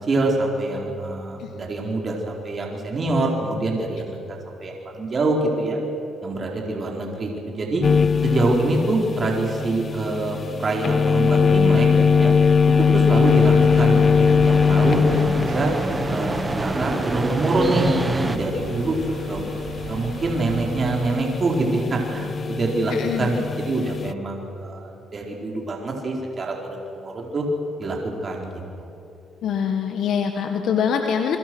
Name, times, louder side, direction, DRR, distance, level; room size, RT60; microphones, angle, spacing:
voice 1, 0.0-4.2 4.5-5.8 6.2-7.9 8.2-12.3 12.8-15.7 16.1-19.5 19.9-27.4 27.8-28.0 28.2-28.9, right 2 dB, 40° right, 0 dB, 4.5 m, -25 dB
sound 1, 7.8-24.1, left 6 dB, 40° left, 0.5 m, -21 dB
sound 2, 11.8-18.4, right 2 dB, 20° right, 1.6 m, -29 dB
sound 3, 13.2-21.1, right 7 dB, 70° right, 1.4 m, -37 dB
voice 2, 22.9-23.4 29.4-31.4, left 7 dB, 75° left, 5 dB, 1.7 m, -24 dB
29.0 x 23.0 x 6.3 m, 2.9 s
cardioid pair, 90°, 0 cm